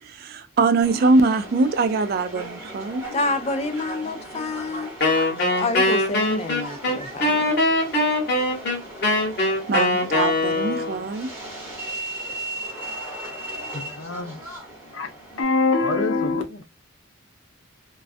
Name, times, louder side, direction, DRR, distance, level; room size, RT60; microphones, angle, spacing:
voice 1, 0.0-3.0 9.7-11.3, right 3 dB, 45° right, 0.3 m, -22 dB
Subway metro underground, 0.8-15.4, right 1 dB, 10° right, 0.9 m, -37 dB
voice 2, 3.1-4.9 5.6-7.5, left 2 dB, 30° left, 0.4 m, -28 dB
Wind instrument woodwind instrument, 5.0-11.0, left 2 dB, 50° left, 1.0 m, -22 dB
voice 3, 13.7-14.4 14.9-15.1 15.3-16.6, left 3 dB, 75° left, 0.6 m, -24 dB
2.3 x 2.2 x 2.5 m
head